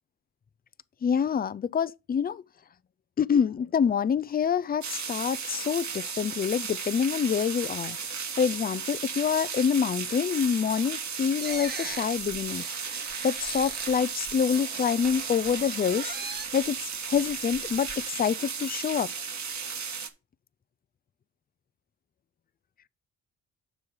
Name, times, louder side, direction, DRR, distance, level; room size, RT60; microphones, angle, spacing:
voice 1, 1.0-2.4 3.2-8.0 8.4-12.6 13.2-16.1 16.5-16.8 17.1-19.1, left 7 dB, 25° left, 0.4 m, -26 dB
sound 1, 4.8-20.1, right 6 dB, 50° right, 1.5 m, -35 dB
sound 2, 11.4-14.0 14.3-16.7 17.1-18.0, right 4 dB, 25° right, 1.1 m, -41 dB
7.0 x 6.2 x 4.8 m
cardioid pair, 85°, 37 cm